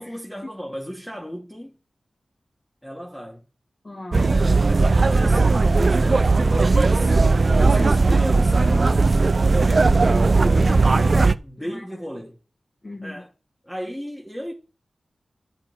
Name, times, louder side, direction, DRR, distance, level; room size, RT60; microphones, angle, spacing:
voice 1, 0.0-1.7 2.8-3.4 4.3-7.2 7.4-9.3 11.2-12.4 13.0-13.3 13.6-14.5, equal, 10° left, 2.8 m, -34 dB
voice 2, 3.8-4.4 9.8-11.9 12.8-13.2, left 2 dB, 40° left, 1.6 m, -38 dB
sound 1, 4.1-11.3, right 3 dB, 55° right, 0.7 m, -17 dB
10.5 x 7.1 x 9.3 m
cardioid pair, 45°, 0 cm